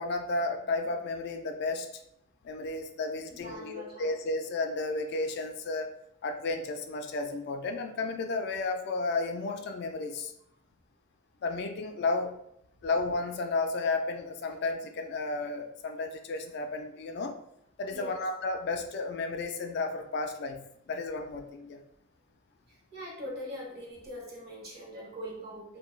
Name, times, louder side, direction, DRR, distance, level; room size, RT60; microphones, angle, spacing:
voice 1, 0.0-1.9 2.4-6.0 6.2-10.3 11.4-12.4 12.8-17.4 17.8-21.8, left 3 dB, 55° left, 5 dB, 0.3 m, -33 dB
voice 2, 3.3-4.1 17.9-18.2 22.6-25.8, equal, 50° right, -3 dB, 0.9 m, -42 dB
2.6 x 2.2 x 3.1 m, 0.74 s
head